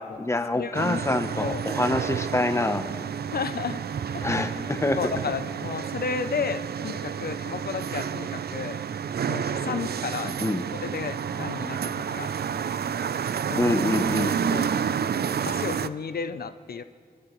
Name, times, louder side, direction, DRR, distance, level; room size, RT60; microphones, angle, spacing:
voice 1, 0.0-2.8 4.2-5.0 9.7-9.8 10.2-10.6 13.6-14.3, left 2 dB, 15° left, 8 dB, 0.7 m, -26 dB
voice 2, 0.5-1.7 3.3-3.8 4.1-4.5 5.0-8.8 9.3-10.3 10.8-12.3 13.5-13.7 14.2-14.7 15.5-16.8, left 6 dB, 70° left, 11 dB, 0.5 m, -33 dB
sound 1, 0.7-15.9, right 7 dB, 75° right, 0.4 m, -30 dB
27.0 x 13.0 x 3.0 m, 2.2 s
wide cardioid pair, 105°, 17 cm